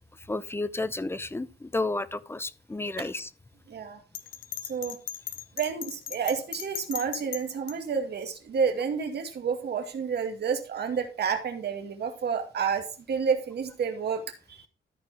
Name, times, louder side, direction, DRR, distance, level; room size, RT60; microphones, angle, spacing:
voice 1, 0.3-3.3, left 2 dB, 10° left, 0.7 m, -32 dB
voice 2, 3.7-4.0 4.6-5.0 5.6-14.2 14.5-14.7, right 6 dB, 55° right, 2.1 m, -30 dB
Bell, 4.1-7.7, left 11 dB, 75° left, 1.0 m, -37 dB
13.5 x 4.5 x 5.0 m
cardioid pair, 90°, 20 cm